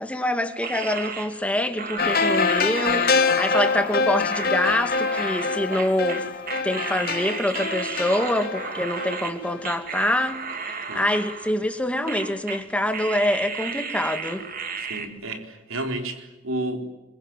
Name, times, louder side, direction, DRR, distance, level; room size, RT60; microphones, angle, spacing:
voice 1, 0.0-6.3 6.6-14.4, left 1 dB, 5° left, 2.1 m, -25 dB
sound 1, 0.6-9.3 9.6-11.8 12.1-12.6 12.9-15.1, right 5 dB, 45° right, 2.8 m, -34 dB
sound 2, 2.0-9.6 9.9-10.0, left 4 dB, 50° left, 2.2 m, -25 dB
voice 2, 14.9-16.9, right 1 dB, 80° right, 4.2 m, -31 dB
25.5 x 23.0 x 9.0 m
head